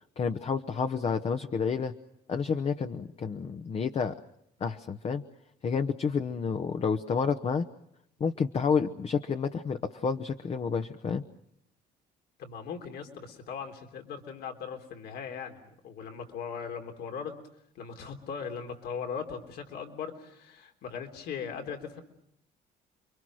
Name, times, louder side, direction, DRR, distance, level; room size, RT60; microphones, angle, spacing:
voice 1, 0.2-1.9 2.3-4.2 4.6-5.2 5.6-7.7 8.2-11.2, left 5 dB, 35° left, 7 dB, 1.0 m, -29 dB
voice 2, 12.4-17.4 17.8-22.0, left 6 dB, 70° left, 4 dB, 3.5 m, -39 dB
29.5 x 23.0 x 6.3 m, 0.76 s
cardioid pair, 110°, 17 cm